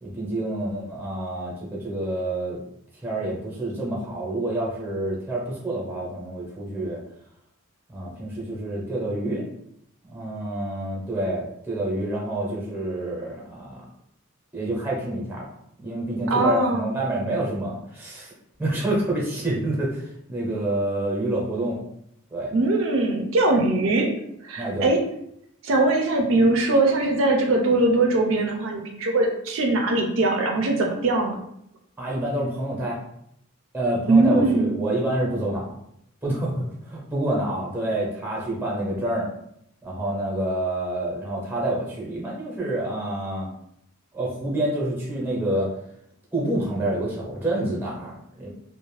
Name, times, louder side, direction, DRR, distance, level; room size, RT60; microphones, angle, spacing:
voice 1, 0.0-2.6 3.0-7.0 7.9-9.4 10.0-13.8 14.5-15.5 15.8-18.3 18.6-21.8 22.3-22.5 24.6-24.9 32.0-33.0 33.7-35.7 36.2-39.3 39.8-43.5 44.1-45.7 46.3-48.5, right 1 dB, 10° right, -3 dB, 0.7 m, -28 dB
voice 2, 16.3-16.9 22.5-24.1 24.4-25.0 25.6-31.4 34.1-34.8, right 2 dB, 65° right, 2 dB, 0.4 m, -21 dB
2.4 x 2.1 x 3.2 m, 0.74 s
head